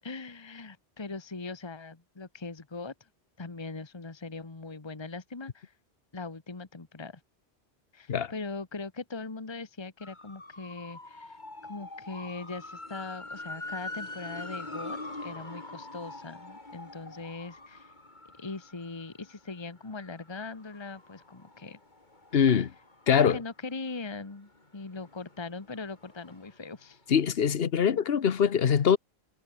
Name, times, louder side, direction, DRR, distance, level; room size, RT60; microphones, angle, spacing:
voice 1, 0.0-2.9 3.4-5.7 6.1-7.2 7.9-17.9 18.4-21.8 23.1-27.0, left 3 dB, 25° left, 1.3 m, -40 dB
sound 1, 10.0-23.7 24.1-26.7 27.0-27.1, left 2 dB, 45° left, 3.4 m, -44 dB
voice 2, 22.3-22.7 23.1-23.4 27.1-29.0, left 7 dB, 65° left, 1.2 m, -23 dB
omnidirectional pair, 1.1 m